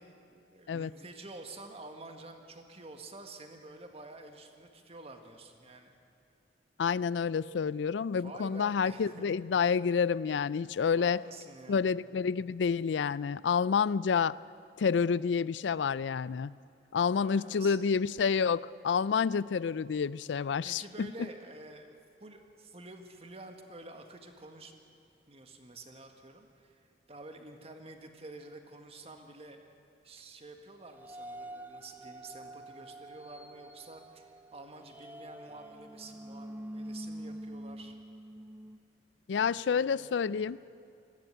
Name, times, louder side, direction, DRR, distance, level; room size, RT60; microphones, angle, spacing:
voice 1, 0.0-6.0 8.2-9.3 10.9-11.9 17.2-17.9 20.6-24.7 25.3-29.6 30.0-38.0 39.3-40.5, right 2 dB, 35° right, 5 dB, 1.7 m, -49 dB
voice 2, 6.8-11.2 11.7-14.4 14.8-16.6 16.9-21.3 39.3-40.6, left 6 dB, 90° left, 20 dB, 0.4 m, -29 dB
sound 1, 30.9-38.8, right 1 dB, 10° right, 0.6 m, -46 dB
20.0 x 15.0 x 9.4 m, 2.5 s
head